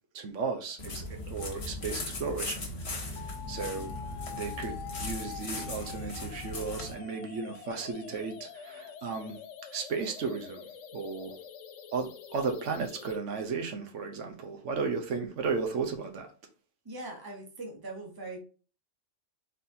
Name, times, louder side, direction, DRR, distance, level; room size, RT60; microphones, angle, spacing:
voice 1, 0.1-3.9 4.3-9.4 9.7-10.6 10.9-11.4 11.9-16.3, right 5 dB, 75° right, 1.1 m, -35 dB
sound 1, 0.8-6.9, left 2 dB, 60° left, 1.4 m, -38 dB
sound 2, 3.2-13.2, left 8 dB, 90° left, 0.9 m, -46 dB
voice 2, 16.8-18.4, right 2 dB, 20° right, 1.0 m, -41 dB
4.0 x 4.0 x 2.7 m
omnidirectional pair, 1.3 m